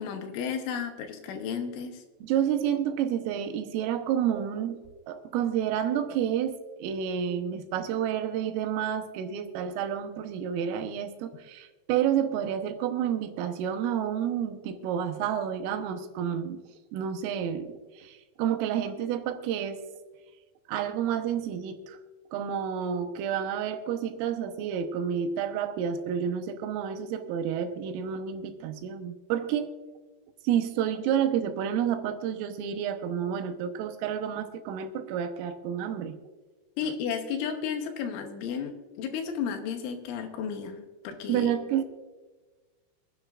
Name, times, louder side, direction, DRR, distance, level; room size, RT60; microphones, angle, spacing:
voice 1, 0.0-2.0 36.8-41.5, left 7 dB, 75° left, 6 dB, 3.3 m, -33 dB
voice 2, 2.2-4.8 5.1-6.5 6.8-16.6 16.9-19.8 20.7-22.0 22.3-29.7 30.4-36.2 41.3-41.8, right 9 dB, 85° right, 7 dB, 3.5 m, -30 dB
26.5 x 9.9 x 2.4 m, 1.3 s
omnidirectional pair, 5.8 m